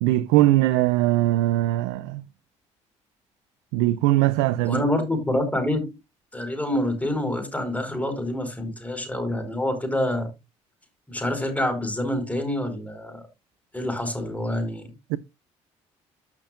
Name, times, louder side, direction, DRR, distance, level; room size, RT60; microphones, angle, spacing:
voice 1, 0.0-2.2 3.7-4.8 15.1-15.2, right 15 dB, 80° right, 0.5 m, -20 dB
voice 2, 4.7-6.0 6.3-10.3 11.1-13.3 13.7-14.9, left 1 dB, 10° left, 4.6 m, -27 dB
14.5 x 6.0 x 2.5 m
hypercardioid pair, 55°, 15 cm